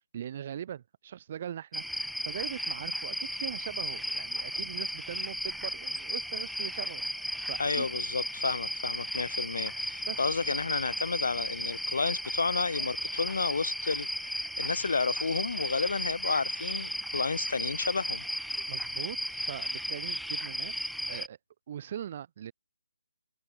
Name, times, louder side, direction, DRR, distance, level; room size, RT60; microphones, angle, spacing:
voice 1, 0.1-1.8 2.3-7.9 10.0-10.2 18.7-21.4 21.7-22.5, right 10 dB, 40° right, 5.5 m, -41 dB
sound 1, 1.7-21.3, equal, ahead, 1.7 m, -35 dB
voice 2, 7.6-18.2, left 4 dB, 70° left, 1.7 m, -31 dB
hypercardioid pair, 160°, 0 cm